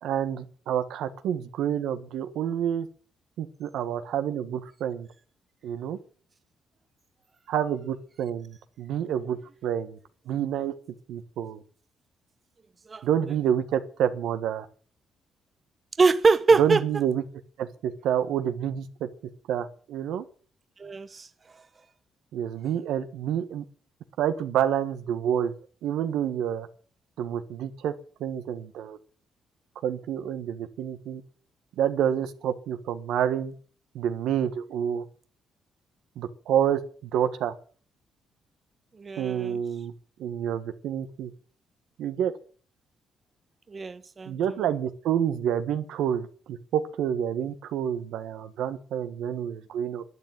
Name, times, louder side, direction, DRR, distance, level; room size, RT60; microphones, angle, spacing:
voice 1, 0.0-2.9 3.4-5.1 5.6-6.0 7.5-10.0 10.3-10.7 11.1-11.6 13.0-14.7 16.6-17.2 17.6-19.1 19.5-20.2 22.3-23.6 24.2-25.5 25.8-26.7 27.2-27.9 28.2-29.0 29.8-31.2 31.8-33.5 33.9-35.0 36.1-37.5 39.2-39.9 40.2-41.3 42.0-42.3 44.3-50.0, right 9 dB, 85° right, 1.5 m, -28 dB
voice 2, 16.0-16.8 20.8-21.3 39.0-39.6 43.7-44.3, right 4 dB, 35° right, 0.9 m, -23 dB
11.5 x 9.7 x 9.0 m
cardioid pair, 90°, 0 cm